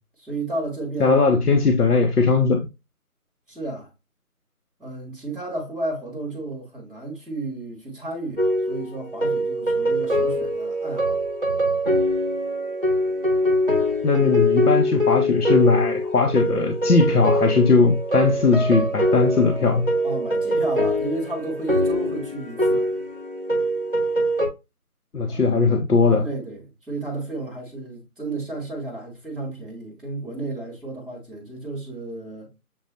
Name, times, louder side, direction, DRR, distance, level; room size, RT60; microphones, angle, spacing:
voice 1, 0.2-1.4 3.5-3.9 4.8-11.2 20.0-22.9 25.3-25.5 26.2-32.5, right 2 dB, ahead, 0.9 m, -32 dB
voice 2, 1.0-2.6 14.0-19.9 25.1-26.3, left 4 dB, 80° left, 0.9 m, -19 dB
sound 1, 8.4-24.5, equal, 35° right, 0.7 m, -23 dB
7.0 x 2.3 x 2.5 m
figure-of-eight pair, 175°, 45 cm